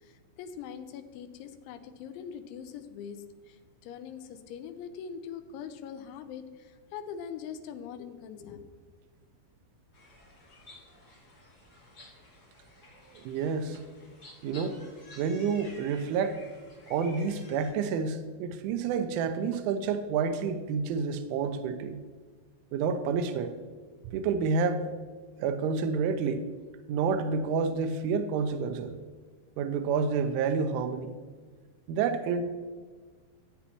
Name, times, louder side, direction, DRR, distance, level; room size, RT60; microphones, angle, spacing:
voice 1, 0.0-8.6, left 7 dB, 80° left, 9 dB, 2.9 m, -42 dB
sound 1, 9.9-17.7, left 2 dB, 35° left, 1.7 m, -53 dB
voice 2, 13.1-13.8 14.4-14.8 15.2-16.4 16.9-22.0 22.7-23.6 24.1-24.9 25.4-26.4 26.9-29.0 29.6-31.1 31.9-32.4, right 5 dB, 85° right, 7 dB, 3.0 m, -29 dB
14.0 x 8.7 x 3.0 m, 1.5 s
omnidirectional pair, 5.6 m